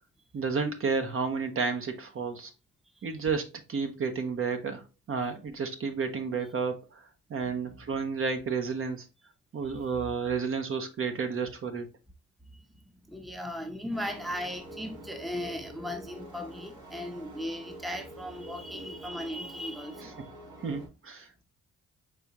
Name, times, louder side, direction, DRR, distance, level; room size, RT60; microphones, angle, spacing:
voice 1, 0.3-2.5 3.0-7.0 7.3-9.0 9.5-11.9 18.7-18.9 20.0-20.1 20.6-21.3, right 5 dB, 45° right, 0.9 m, -31 dB
voice 2, 7.4-7.8 9.6-9.9 13.1-20.3, equal, ahead, 0.7 m, -37 dB
sound 1, 13.9-20.9, right 1 dB, 85° right, 3.2 m, -47 dB
5.0 x 3.6 x 2.9 m
cardioid pair, 90°, 30 cm